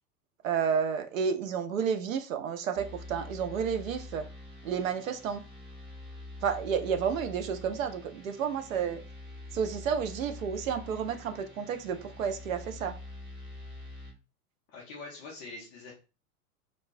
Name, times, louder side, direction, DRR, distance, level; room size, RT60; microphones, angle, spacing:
voice 1, 0.4-4.3 4.6-5.4 6.4-9.0 9.5-13.0, right 7 dB, 60° right, 0.6 m, -31 dB
sound 1, 2.7-14.1, left 2 dB, ahead, 0.8 m, -46 dB
voice 2, 14.7-15.9, left 3 dB, 20° left, 0.3 m, -44 dB
3.0 x 2.1 x 2.5 m
figure-of-eight pair, 90°, 46 cm